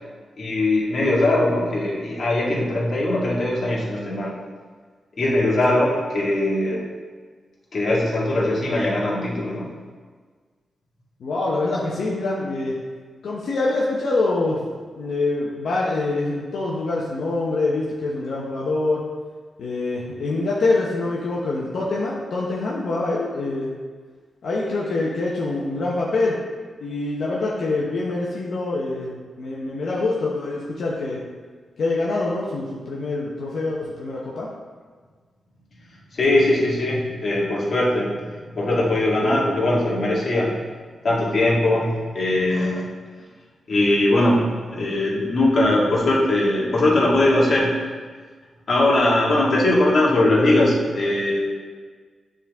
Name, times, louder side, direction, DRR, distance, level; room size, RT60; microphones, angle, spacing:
voice 1, 0.4-4.3 5.2-6.8 7.7-9.7 36.1-40.5 41.0-42.8 43.7-44.5 44.7-47.7 48.7-51.4, left 1 dB, 55° left, -6 dB, 1.9 m, -20 dB
voice 2, 11.2-12.8 13.2-14.6 15.0-19.0 19.6-23.8 24.4-26.4 26.8-31.2 31.8-34.5, left 2 dB, 75° left, -5 dB, 0.9 m, -25 dB
9.9 x 3.8 x 3.6 m, 1.5 s
wide cardioid pair, 105°, 0 cm